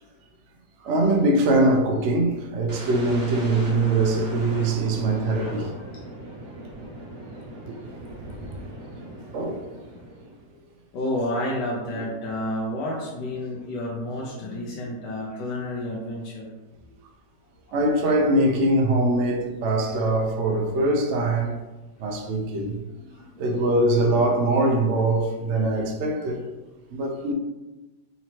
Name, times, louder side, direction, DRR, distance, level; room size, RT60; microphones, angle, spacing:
voice 1, 0.8-5.7 7.7-7.8 9.3-9.7 12.0-12.1 17.7-21.6 22.0-22.8 23.4-26.4 26.9-27.3, right 2 dB, 75° right, 0.6 m, -22 dB
sound 1, 2.7-10.5, right 1 dB, 60° right, 1.3 m, -39 dB
voice 2, 5.4-6.2 8.9-9.6 9.9-10.6 10.9-16.5 17.7-17.8 19.8-20.3 22.1-22.3 23.0-23.4, left 1 dB, 75° left, 1.3 m, -32 dB
4.1 x 3.0 x 2.8 m
omnidirectional pair, 1.9 m